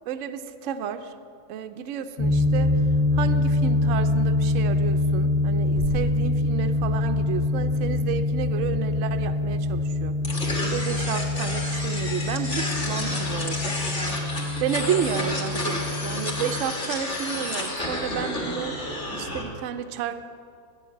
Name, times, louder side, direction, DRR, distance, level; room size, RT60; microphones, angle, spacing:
voice 1, 0.1-1.1 1.5-2.7 3.1-13.8 14.6-20.2, right 8 dB, 70° right, 8 dB, 0.8 m, -31 dB
sound 1, 2.2-16.6, left 2 dB, 90° left, 1.4 m, -25 dB
sound 2, 5.8-7.7, right 1 dB, 65° left, 2.4 m, -37 dB
sound 3, 10.2-19.4, left 1 dB, 35° left, 1.7 m, -31 dB
8.6 x 7.0 x 8.3 m, 2.3 s
omnidirectional pair, 1.8 m